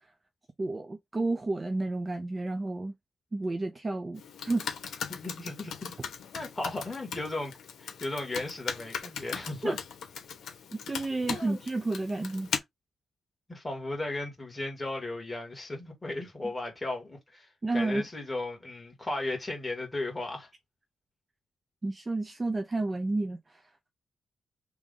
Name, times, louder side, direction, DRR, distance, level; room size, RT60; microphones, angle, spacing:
voice 1, 0.6-2.9 3.3-4.7 4.9-5.0 9.6-9.8 10.7-12.5 17.6-18.0 21.8-23.6, right 2 dB, 25° right, 0.5 m, -31 dB
Computer keyboard, 4.2-12.6, left 7 dB, 85° left, 1.2 m, -39 dB
voice 2, 5.1-5.9 6.3-7.5 7.8-9.8 11.3-11.6 13.5-20.5, left 2 dB, 15° left, 2.1 m, -35 dB
3.6 x 3.1 x 3.8 m
wide cardioid pair, 140°, 0 cm